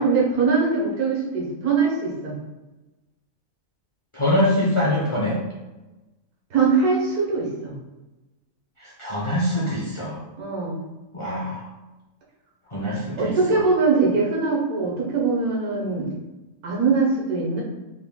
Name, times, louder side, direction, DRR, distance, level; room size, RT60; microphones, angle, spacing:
voice 1, 0.0-2.3 6.5-7.7 10.4-10.8 13.2-16.1 16.6-17.6, right 4 dB, 85° right, -3 dB, 1.5 m, -22 dB
voice 2, 4.1-5.4 8.8-10.2 11.1-11.7 12.7-13.6, left 1 dB, 45° left, -5 dB, 0.4 m, -24 dB
3.7 x 2.2 x 3.6 m, 1.1 s
omnidirectional pair, 1.5 m